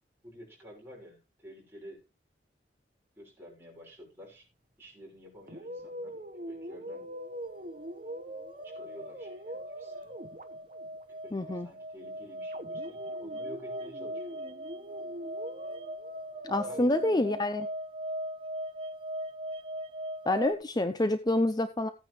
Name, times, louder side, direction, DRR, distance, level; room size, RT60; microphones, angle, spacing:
voice 1, 0.2-2.0 3.2-4.5 4.8-6.2 6.5-7.1 8.6-10.2 11.1-14.5 16.6-16.9, equal, 15° right, -2 dB, 6.0 m, -50 dB
sound 1, 5.5-11.0 12.5-17.4, equal, 45° right, 1.2 m, -43 dB
sound 2, 7.2-20.5, right 1 dB, 30° right, 0.7 m, -40 dB
voice 2, 11.3-11.7 16.4-17.7 20.3-21.9, left 1 dB, 20° left, 10 dB, 0.6 m, -27 dB
16.0 x 9.4 x 3.1 m, 0.29 s
head